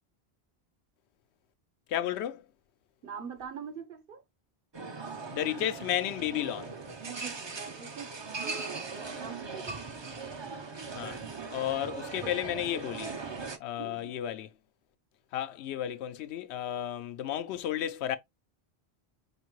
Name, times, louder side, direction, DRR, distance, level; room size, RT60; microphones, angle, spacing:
voice 1, 1.9-2.5 5.3-6.7 11.0-11.2 11.5-13.1 13.6-14.5 15.3-18.2, left 11 dB, 80° left, 0.8 m, -33 dB
voice 2, 3.0-4.2 7.1-8.1 8.4-9.8 10.8-11.2 12.2-12.3 13.2-13.5 13.8-14.2, right 6 dB, 60° right, 1.0 m, -44 dB
sound 1, 4.7-13.6, right 4 dB, 35° right, 0.5 m, -39 dB
5.2 x 2.5 x 3.0 m
omnidirectional pair, 1.1 m